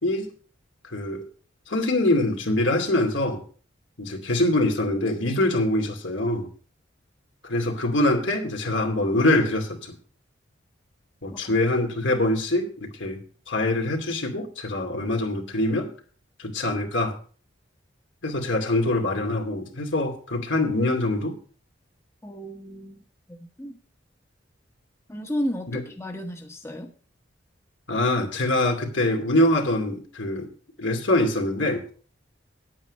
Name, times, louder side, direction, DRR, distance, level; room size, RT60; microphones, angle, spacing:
voice 1, 0.9-1.3 1.7-3.4 4.0-6.5 7.4-10.0 11.2-13.2 13.5-15.9 16.4-17.1 18.2-21.4 25.7-25.8 27.9-30.5 30.8-31.9, left 1 dB, 75° left, 2 dB, 2.5 m, -24 dB
voice 2, 22.2-23.8 25.1-26.9, equal, 15° left, 3 dB, 1.1 m, -33 dB
9.8 x 8.8 x 5.2 m, 0.42 s
head